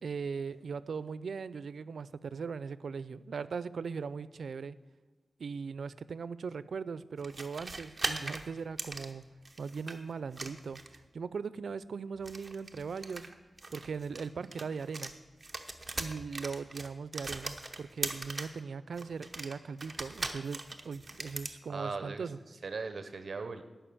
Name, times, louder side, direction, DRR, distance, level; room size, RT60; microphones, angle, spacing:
voice 1, 0.0-4.8 5.4-9.3 9.6-13.3 13.7-15.1 16.0-22.4, right 5 dB, 85° right, 17 dB, 0.4 m, -39 dB
sound 1, 7.2-10.0 10.3-11.1 12.1-15.1 15.4-18.6 19.0-21.6, right 2 dB, 30° right, 0.9 m, -40 dB
voice 2, 21.7-23.6, right 4 dB, 55° right, 9 dB, 0.7 m, -39 dB
11.5 x 5.7 x 8.7 m, 1.3 s
wide cardioid pair, 140°, 0 cm